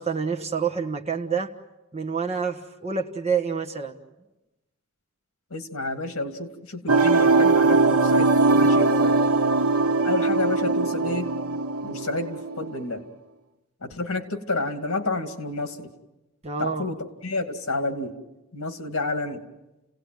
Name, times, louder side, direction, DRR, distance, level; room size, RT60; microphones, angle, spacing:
voice 1, 0.0-1.5 1.9-4.0 16.4-16.9, right 6 dB, 30° right, 3 dB, 1.5 m, -27 dB
voice 2, 5.5-9.2 10.0-11.3 11.8-13.0 13.8-15.9 16.6-18.1 18.5-19.4, left 2 dB, 65° left, 6 dB, 2.4 m, -30 dB
sound 1, 6.9-12.7, right 3 dB, 80° right, 1.4 m, -20 dB
30.0 x 17.5 x 9.2 m, 1.0 s
head